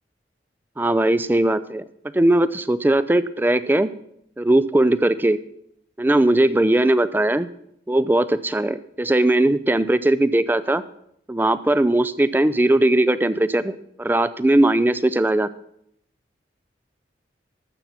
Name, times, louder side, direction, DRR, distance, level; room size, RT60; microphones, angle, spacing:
voice 1, 0.8-1.8 2.1-3.9 4.4-5.4 6.0-7.5 7.9-10.8 11.3-15.5, right 1 dB, 10° right, 15 dB, 0.3 m, -19 dB
12.0 x 7.5 x 5.7 m, 0.73 s
head